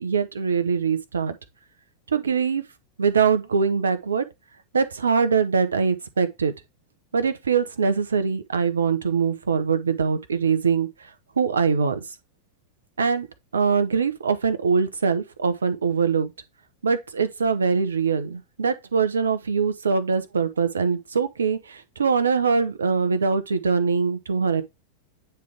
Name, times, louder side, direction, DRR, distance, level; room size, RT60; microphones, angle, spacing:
voice 1, 0.0-1.4 2.1-2.6 3.0-4.2 4.7-6.5 7.1-10.9 11.4-12.0 13.0-13.3 13.5-16.3 16.8-24.6, right 5 dB, 70° right, 0.9 m, -23 dB
9.1 x 3.4 x 3.5 m
figure-of-eight pair, 90°, 0 cm